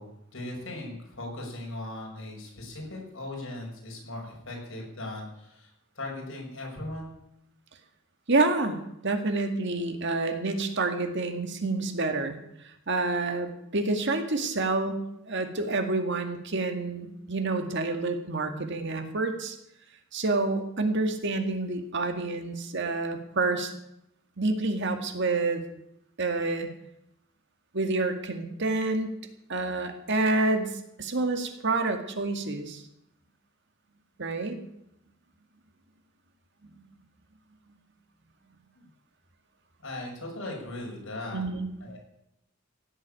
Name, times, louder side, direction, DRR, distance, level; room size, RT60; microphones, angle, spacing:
voice 1, 0.0-7.1 38.7-38.9 39.8-41.4 41.8-42.0, left 1 dB, 70° left, -1 dB, 6.2 m, -38 dB
voice 2, 8.3-12.4 12.6-19.6 20.1-23.7 24.4-25.6 26.2-26.7 27.7-29.1 29.5-30.7 31.0-32.8 34.2-34.6 36.6-36.7 41.3-41.7, right 3 dB, 60° right, 6 dB, 2.0 m, -28 dB
17.0 x 7.9 x 9.1 m, 0.81 s
head